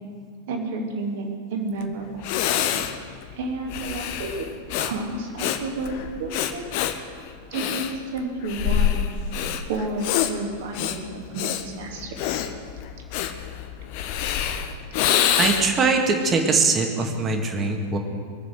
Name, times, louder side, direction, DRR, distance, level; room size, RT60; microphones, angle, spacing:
voice 1, 0.5-2.1 3.4-4.5 4.8-6.6 7.5-9.0 9.4-12.2, right 3 dB, 55° right, 2 dB, 2.5 m, -31 dB
Breathing, 1.8-1.9 2.2-15.9, left 10 dB, 45° left, 1.0 m, -26 dB
voice 2, 15.4-18.0, right 4 dB, 25° right, 3 dB, 2.0 m, -22 dB
22.0 x 7.5 x 8.1 m, 2.1 s
figure-of-eight pair, 90°, 0 cm